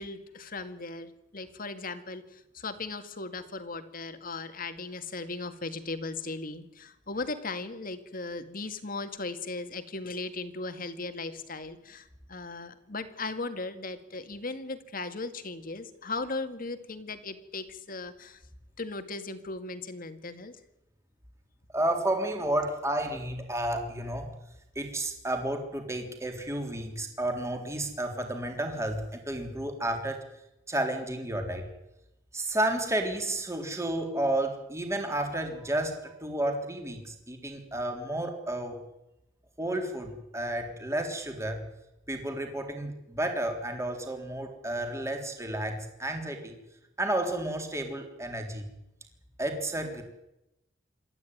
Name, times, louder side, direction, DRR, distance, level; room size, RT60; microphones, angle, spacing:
voice 1, 0.0-18.4 18.8-20.6, left 3 dB, 50° left, 9 dB, 2.1 m, -37 dB
voice 2, 21.7-24.3 24.8-30.2 30.7-31.7 32.3-38.8 39.6-41.7 42.1-46.5 47.0-48.7 49.4-50.0, right 1 dB, 15° right, 4 dB, 3.6 m, -31 dB
27.0 x 13.5 x 9.5 m, 0.90 s
head